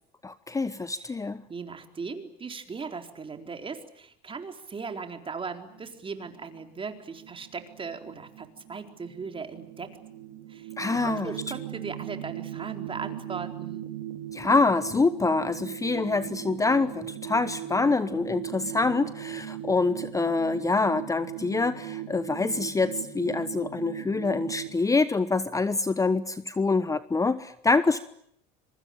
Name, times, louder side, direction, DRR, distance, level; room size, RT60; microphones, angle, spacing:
voice 1, 0.2-1.4 10.8-11.3 14.3-28.0, left 3 dB, 15° left, 14 dB, 1.0 m, -26 dB
voice 2, 1.5-10.0 10.5-10.7 11.0-13.9, right 5 dB, 25° right, 6 dB, 4.2 m, -38 dB
sound 1, 5.7-24.8, right 12 dB, 80° right, 4.1 m, -39 dB
26.0 x 24.0 x 8.7 m, 0.71 s
supercardioid pair, 85°, 19 cm